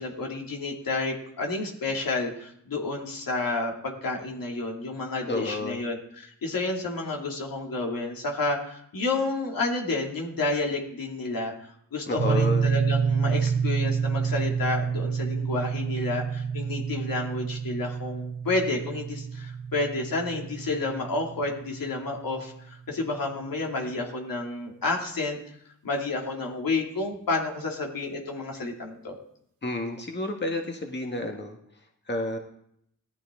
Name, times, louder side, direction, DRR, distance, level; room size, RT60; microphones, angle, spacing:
voice 1, 0.0-11.5 11.9-25.4 25.8-29.2, left 3 dB, 70° left, 0 dB, 2.7 m, -30 dB
voice 2, 5.3-5.8 12.1-12.7 29.6-31.6 32.1-32.4, left 2 dB, 30° left, 3 dB, 1.7 m, -30 dB
sound 1, 12.2-22.3, right 6 dB, 65° right, 2.2 m, -28 dB
16.5 x 13.5 x 3.8 m, 0.74 s
cardioid pair, 65°, 36 cm